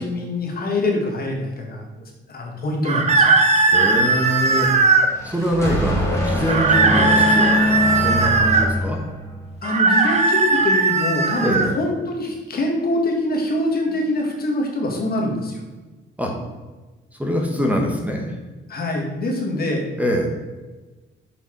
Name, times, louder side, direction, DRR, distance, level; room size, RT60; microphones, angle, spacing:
voice 1, 0.0-1.8 2.3-3.3 9.6-15.6 18.7-19.8, left 1 dB, 50° left, 0 dB, 2.0 m, -24 dB
sound 1, 2.8-5.1 6.5-8.7 9.6-11.7, right 3 dB, 35° right, 1.0 m, -18 dB
voice 2, 3.7-4.7 5.2-9.0 11.4-11.7 16.2-16.3 17.2-18.3 20.0-20.3, equal, 5° right, 1 dB, 1.3 m, -23 dB
sound 2, 4.9-9.5, left 1 dB, 15° left, 2.0 m, -23 dB
6.7 x 5.3 x 4.7 m, 1.2 s
cardioid pair, 90°, 20 cm